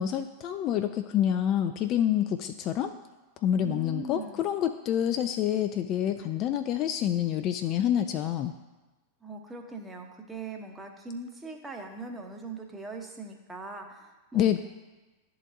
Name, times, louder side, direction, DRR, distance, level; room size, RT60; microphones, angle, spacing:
voice 1, 0.0-2.9 3.4-8.5 14.3-14.6, left 10 dB, 35° left, 8 dB, 0.3 m, -27 dB
voice 2, 3.6-4.5 9.2-14.6, right 3 dB, 10° right, 2 dB, 0.9 m, -41 dB
11.5 x 3.9 x 2.6 m, 1.2 s
figure-of-eight pair, 90°, 0 cm